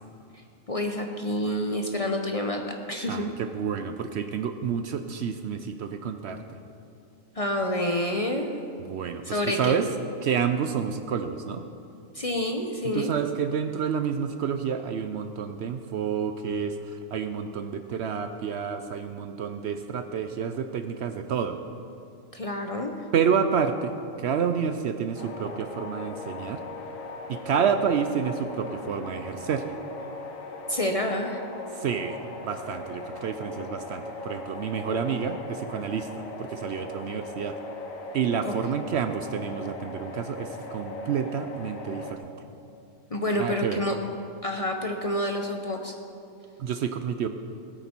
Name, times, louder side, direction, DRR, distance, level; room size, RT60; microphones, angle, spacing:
voice 1, 0.7-3.3 7.4-8.5 9.3-9.8 12.1-13.1 22.3-22.9 30.7-31.4 38.4-38.5 43.1-44.0 44.4-45.9, left 1 dB, 35° left, 3 dB, 0.7 m, -28 dB
voice 2, 3.1-6.4 8.8-9.9 10.2-11.6 12.9-21.6 23.1-26.6 27.3-29.7 31.8-32.2 32.4-37.6 38.1-42.3 43.4-43.8 46.6-47.3, right 7 dB, 65° right, 8 dB, 0.8 m, -29 dB
sound 1, 25.1-42.1, left 2 dB, 80° left, 1.5 m, -39 dB
18.0 x 9.0 x 4.4 m, 2.6 s
omnidirectional pair, 1.4 m